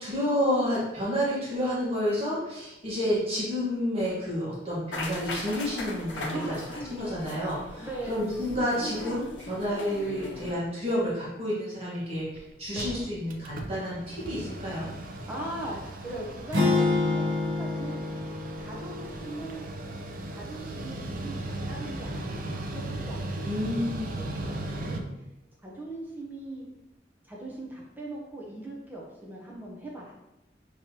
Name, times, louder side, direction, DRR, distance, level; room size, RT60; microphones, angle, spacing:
voice 1, 0.0-6.5 6.9-14.9 23.4-24.0, equal, 35° right, -7 dB, 1.4 m, -30 dB
sound 1, 4.9-10.5, left 1 dB, 85° left, 0.7 m, -38 dB
voice 2, 6.3-6.8 7.8-8.3 12.7-12.9 15.3-18.0 18.6-19.7 20.3-25.0 25.6-26.7 27.2-30.2, right 1 dB, 10° right, -4 dB, 0.8 m, -40 dB
Mechanical fan, 12.0-12.1 12.4-12.5 12.6-25.0, right 1 dB, 50° right, 0.5 m, -37 dB
sound 2, 16.5-20.7, left 3 dB, 75° right, 1.0 m, -29 dB
5.6 x 3.1 x 2.8 m, 0.92 s
head